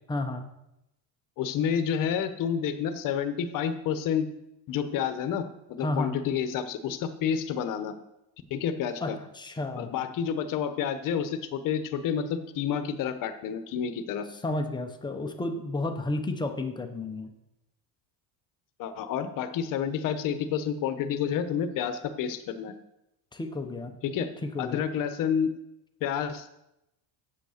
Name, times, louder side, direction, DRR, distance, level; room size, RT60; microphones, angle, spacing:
voice 1, 0.1-0.4 5.8-6.1 9.0-9.9 14.4-17.3 23.3-24.0 24.4-24.9, left 2 dB, 10° left, 5 dB, 0.7 m, -32 dB
voice 2, 1.4-4.3 4.7-8.0 8.5-9.2 9.8-14.3 18.8-22.7 24.0-24.3 24.6-25.5 26.0-26.5, left 8 dB, 45° left, 9 dB, 1.0 m, -29 dB
8.2 x 7.4 x 6.4 m, 0.87 s
cardioid pair, 165°, 46 cm